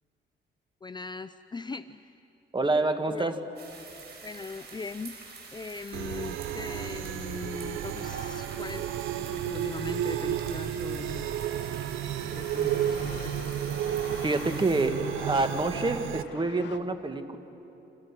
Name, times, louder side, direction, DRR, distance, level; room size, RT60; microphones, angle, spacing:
voice 1, 0.8-2.1 3.1-3.3 4.2-5.2 5.5-11.3 12.2-13.5, left 4 dB, 20° left, 12 dB, 0.6 m, -40 dB
voice 2, 2.5-3.4 14.2-17.4, right 2 dB, 25° right, 8 dB, 1.8 m, -27 dB
sound 1, 3.6-14.9, right 4 dB, 55° right, 5.8 m, -47 dB
sound 2, 5.9-16.2, right 11 dB, 85° right, 0.8 m, -32 dB
sound 3, 8.0-16.8, left 8 dB, 60° left, 1.5 m, -48 dB
29.0 x 26.5 x 6.1 m, 2.9 s
cardioid pair, 90°, 20 cm